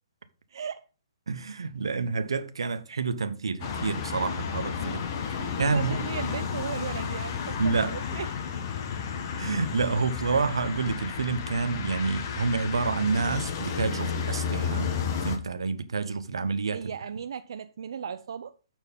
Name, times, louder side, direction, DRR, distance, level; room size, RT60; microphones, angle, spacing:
voice 1, 0.5-0.8 5.2-8.3 16.7-18.6, right 7 dB, 65° right, 0.5 m, -36 dB
voice 2, 1.3-5.0 5.6-6.0 7.6-8.0 9.4-14.9 15.2-16.8, right 4 dB, 90° right, 1.0 m, -28 dB
sound 1, 3.6-15.4, left 6 dB, 40° left, 1.3 m, -32 dB
7.2 x 4.5 x 5.3 m
hypercardioid pair, 155°, 3 cm